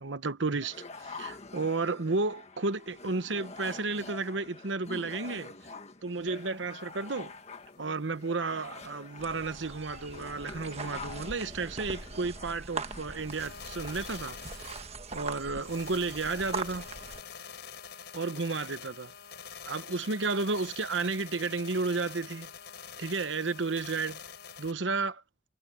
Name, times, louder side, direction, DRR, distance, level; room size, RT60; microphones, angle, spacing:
voice 1, 0.0-5.5 6.0-7.3 7.8-14.8 15.1-16.9 18.1-19.1 19.7-22.5 23.0-24.2 24.6-25.2, right 3 dB, 85° right, 1.1 m, -32 dB
sound 1, 0.6-13.4, left 4 dB, 35° left, 1.6 m, -47 dB
sound 2, 6.3-6.4 6.6-6.7 7.1-7.2 7.6-7.7 8.2-8.7 9.2-9.3 9.7-9.8 10.2-10.3 10.7-10.8 11.2-11.3 11.7-11.8 12.2-12.3 12.8-12.9 13.1-24.7, left 7 dB, 60° left, 7.1 m, -46 dB
sound 3, 9.2-17.2, right 4 dB, 35° right, 1.2 m, -41 dB
head